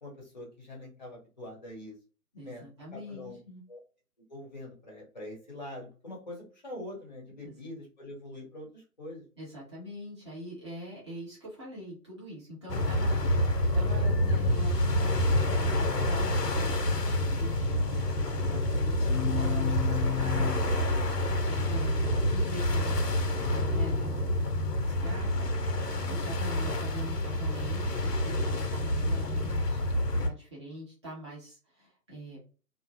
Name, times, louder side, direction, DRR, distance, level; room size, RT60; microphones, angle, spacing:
voice 1, 0.0-1.9 2.4-2.7 2.9-3.4 3.7-3.8 4.3-9.2, left 1 dB, 30° left, -1 dB, 0.7 m, -44 dB
voice 2, 2.3-3.6 7.4-7.6 9.4-25.7 26.1-29.9 30.2-32.4, equal, 20° right, -7 dB, 0.8 m, -44 dB
sound 1, 12.7-30.3, left 1 dB, 85° left, 0.7 m, -27 dB
2.4 x 2.1 x 2.5 m, 0.36 s
figure-of-eight pair, 145°, 47 cm